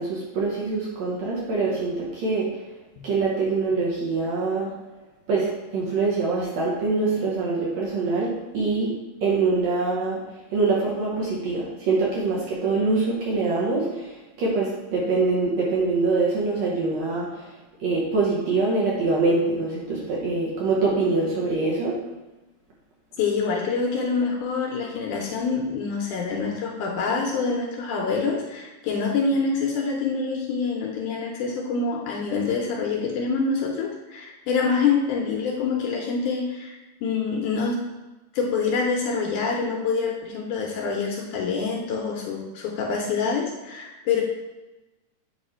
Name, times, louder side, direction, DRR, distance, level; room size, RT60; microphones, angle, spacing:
voice 1, 0.0-2.5 3.0-4.7 5.3-8.9 9.2-10.2 10.5-14.1 14.4-17.3 17.8-22.0, right 3 dB, 65° right, -5 dB, 1.9 m, -24 dB
voice 2, 23.2-36.8 37.0-37.8 38.3-44.2, left 5 dB, 75° left, 0 dB, 2.0 m, -26 dB
8.2 x 3.2 x 4.4 m, 1.1 s
omnidirectional pair, 4.0 m